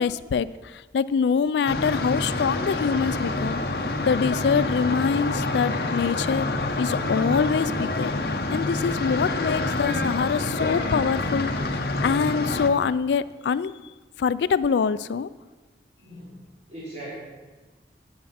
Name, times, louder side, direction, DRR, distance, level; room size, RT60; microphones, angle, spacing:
voice 1, 0.0-6.5 6.8-13.7 14.2-15.3, left 6 dB, 80° left, 16 dB, 0.3 m, -25 dB
sound 1, 1.7-12.7, left 2 dB, 60° left, 0.8 m, -27 dB
voice 2, 16.0-17.2, right 1 dB, 40° right, -7 dB, 3.2 m, -40 dB
11.0 x 9.5 x 4.2 m, 1.2 s
head